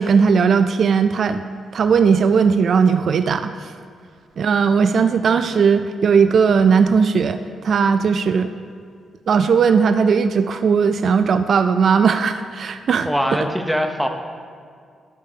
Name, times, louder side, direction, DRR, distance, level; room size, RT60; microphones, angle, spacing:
voice 1, 0.0-1.4 1.7-3.7 4.4-8.5 9.3-13.1, right 6 dB, 60° right, 10 dB, 0.3 m, -17 dB
voice 2, 13.0-14.1, equal, ahead, 4 dB, 0.7 m, -23 dB
13.5 x 7.0 x 2.8 m, 2.2 s
cardioid pair, 105°, 0 cm